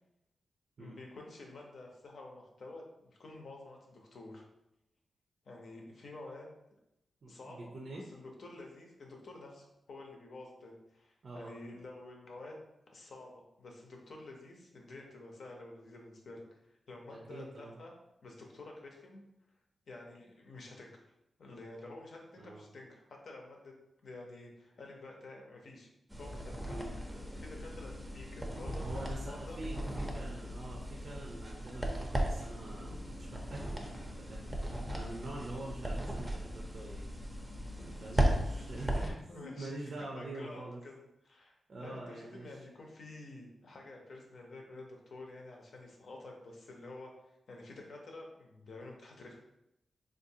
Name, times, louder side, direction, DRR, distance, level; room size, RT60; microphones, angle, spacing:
voice 1, 0.8-4.4 5.5-6.5 7.3-12.6 12.9-17.9 18.2-19.2 19.9-20.9 21.4-23.7 24.0-25.9 26.2-26.8 27.4-28.9 29.3-29.6 38.1-38.2 38.5-41.5 41.8-47.1 47.5-49.4, left 2 dB, 70° left, 0 dB, 0.7 m, -50 dB
voice 2, 7.2-8.1 11.2-11.5 17.1-17.8 22.4-22.6 26.7-27.0 28.8-37.1 37.8-40.8 41.7-42.6, right 2 dB, 60° right, -1 dB, 0.5 m, -45 dB
sound 1, 26.1-39.1, right 1 dB, 10° right, 0.5 m, -37 dB
3.6 x 2.5 x 2.7 m, 0.87 s
cardioid pair, 85°, 0 cm